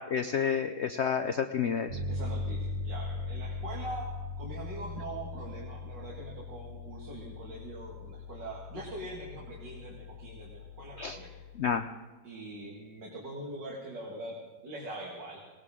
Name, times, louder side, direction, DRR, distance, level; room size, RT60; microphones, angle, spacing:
voice 1, 0.1-1.9 11.0-11.2 11.6-11.8, left 7 dB, 80° left, 8 dB, 0.6 m, -29 dB
Bass guitar, 1.9-11.6, left 3 dB, 65° right, 4.5 m, -40 dB
voice 2, 2.1-4.1 4.4-11.4 12.2-14.4 14.6-15.4, right 2 dB, 80° right, -2 dB, 2.8 m, -42 dB
19.5 x 18.5 x 3.7 m, 1.3 s
omnidirectional pair, 1.9 m